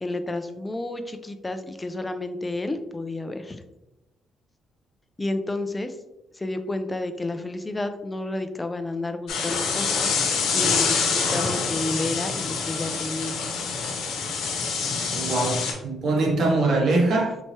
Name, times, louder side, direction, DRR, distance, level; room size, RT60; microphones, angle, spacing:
voice 1, 0.0-3.6 5.2-6.0 6.3-10.1 10.5-13.4, left 2 dB, 20° left, 8 dB, 0.4 m, -31 dB
sound 1, 9.3-15.7, left 5 dB, 90° left, 0.8 m, -26 dB
voice 2, 15.1-17.4, right 2 dB, 65° right, 0 dB, 1.1 m, -23 dB
4.6 x 3.0 x 2.8 m, 0.94 s
cardioid pair, 90°, 0 cm